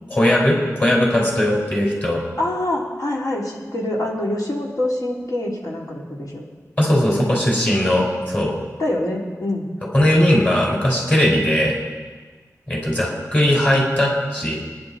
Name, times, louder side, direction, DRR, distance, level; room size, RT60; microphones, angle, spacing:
voice 1, 0.1-2.2 6.8-8.5 9.9-11.8 12.7-14.6, left 1 dB, 25° left, -2 dB, 5.3 m, -18 dB
voice 2, 2.4-6.4 8.8-9.7, left 1 dB, 75° left, -3 dB, 3.5 m, -25 dB
25.5 x 10.5 x 4.4 m, 1.4 s
wide cardioid pair, 85°, 6 cm